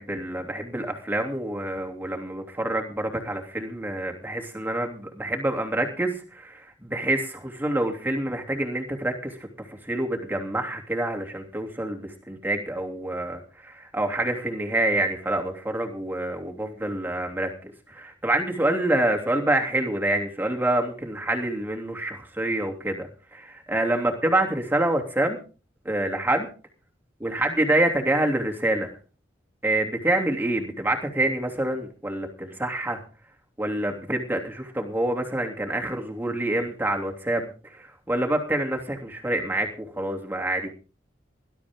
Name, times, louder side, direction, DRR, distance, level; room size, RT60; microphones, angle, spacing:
voice 1, 0.0-9.4 9.7-25.4 25.8-26.5 27.2-28.9 29.6-33.0 33.6-40.7, right 1 dB, 10° right, 2 dB, 2.9 m, -27 dB
20.0 x 12.5 x 3.7 m, 0.37 s
head